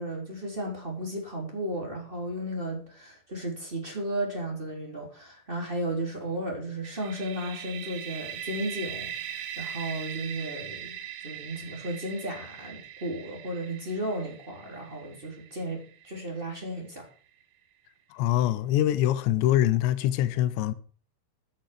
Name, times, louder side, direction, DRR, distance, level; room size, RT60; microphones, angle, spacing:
voice 1, 0.0-11.0 11.2-17.0, right 1 dB, 15° right, 2.7 m, -34 dB
sound 1, 6.8-16.5, right 9 dB, 85° right, 3.7 m, -40 dB
voice 2, 18.1-20.7, left 13 dB, 75° left, 2.9 m, -24 dB
13.5 x 9.1 x 5.0 m
omnidirectional pair, 5.7 m